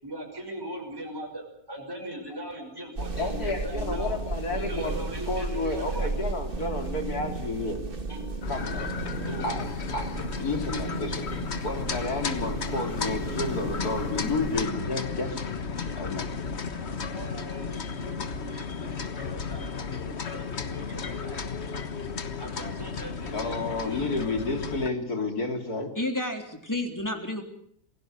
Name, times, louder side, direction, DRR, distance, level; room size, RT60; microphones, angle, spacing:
voice 1, 0.0-4.2 4.5-6.1 8.1-8.2 9.3-9.5 16.8-21.4 22.4-24.2, right 1 dB, 15° right, 0 dB, 6.0 m, -40 dB
sound 1, 3.0-14.7, right 3 dB, 35° right, 1.8 m, -35 dB
voice 2, 3.2-7.8 8.5-8.9 9.4-11.2 11.6-15.4 16.0-16.3 23.3-25.9, left 3 dB, 75° left, 5 dB, 3.8 m, -31 dB
sound 2, 8.4-24.9, left 5 dB, 45° left, 1.5 m, -34 dB
voice 3, 26.0-27.4, left 1 dB, 10° left, 4 dB, 3.7 m, -30 dB
27.5 x 17.5 x 8.1 m, 0.68 s
omnidirectional pair, 1.6 m